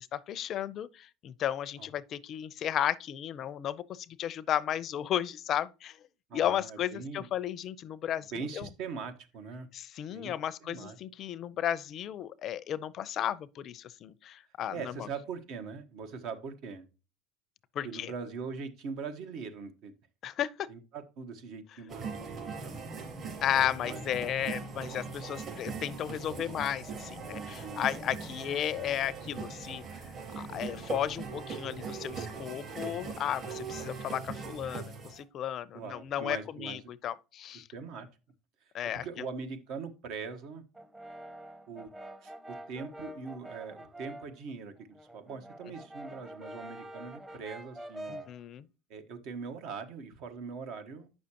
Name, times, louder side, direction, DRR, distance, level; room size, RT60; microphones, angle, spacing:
voice 1, 0.0-6.0 6.3-8.7 9.7-15.1 17.8-18.1 20.2-20.7 23.4-30.1 30.4-37.6 38.7-39.1 48.1-48.7, left 10 dB, 50° left, 0.5 m, -34 dB
voice 2, 6.3-7.3 8.3-9.7 10.1-10.3 10.6-11.0 14.7-16.8 17.8-19.9 20.7-22.9 23.9-24.1 27.6-27.9 35.7-36.8 37.5-38.1 38.9-40.6 41.7-41.9 42.2-48.3 48.9-51.1, right 5 dB, 65° right, 1.1 m, -41 dB
sound 1, 21.9-35.2, right 5 dB, 40° right, 3.8 m, -40 dB
Brass instrument, 40.7-44.4 44.8-48.4, right 1 dB, 15° right, 0.9 m, -46 dB
8.6 x 6.3 x 2.9 m
supercardioid pair, 95°, 0 cm